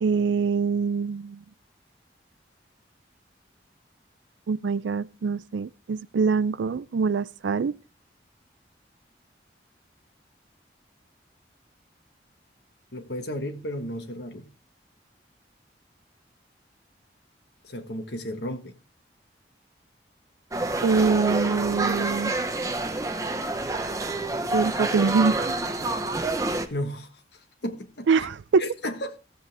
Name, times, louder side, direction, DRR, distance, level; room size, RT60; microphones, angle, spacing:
voice 1, 0.0-1.4 4.5-7.7 20.8-22.3 24.5-25.6 28.1-28.6, right 5 dB, 90° right, 0.4 m, -24 dB
voice 2, 12.9-14.5 17.6-18.7 26.7-27.1 27.6-28.3 28.6-29.2, equal, 70° left, 1.4 m, -33 dB
sound 1, 20.5-26.7, right 2 dB, 20° right, 0.8 m, -28 dB
14.5 x 7.7 x 3.4 m
head